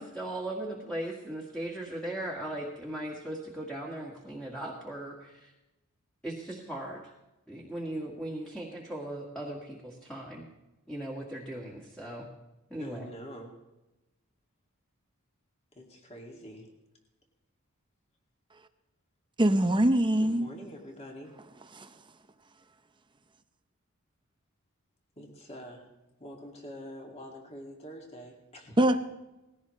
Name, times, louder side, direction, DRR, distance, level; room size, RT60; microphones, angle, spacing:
voice 1, 0.0-5.5 6.2-7.0 7.5-10.5 10.9-12.3 12.7-13.0, right 1 dB, 5° left, -3 dB, 1.9 m, -38 dB
voice 2, 12.8-13.6 15.7-16.7 20.2-21.4 25.2-25.9 26.2-28.8, equal, 30° left, 0 dB, 2.4 m, -45 dB
voice 3, 19.4-20.5 21.7-21.9 28.8-29.1, right 1 dB, 20° right, 8 dB, 0.7 m, -23 dB
19.5 x 16.5 x 3.2 m, 1.0 s
head